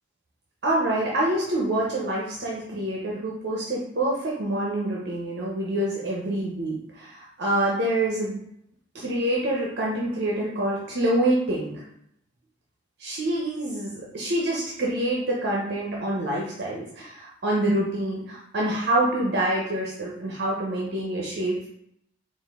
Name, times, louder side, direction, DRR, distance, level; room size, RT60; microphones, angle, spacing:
voice 1, 0.6-8.4 8.9-11.8 13.0-21.7, right 1 dB, 55° right, -4 dB, 0.7 m, -26 dB
4.1 x 2.5 x 3.6 m, 0.73 s
head